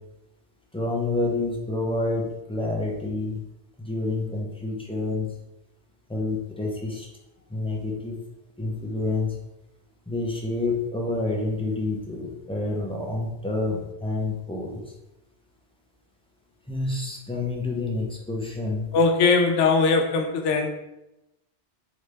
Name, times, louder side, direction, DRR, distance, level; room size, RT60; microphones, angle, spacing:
voice 1, 0.7-3.4 3.8-5.3 6.1-7.1 7.5-8.2 8.6-9.4 10.1-14.8 16.7-18.9, left 2 dB, 10° left, -2 dB, 0.4 m, -28 dB
voice 2, 18.9-20.7, left 4 dB, 90° left, 4 dB, 0.9 m, -20 dB
3.8 x 3.2 x 3.2 m, 0.92 s
omnidirectional pair, 1.2 m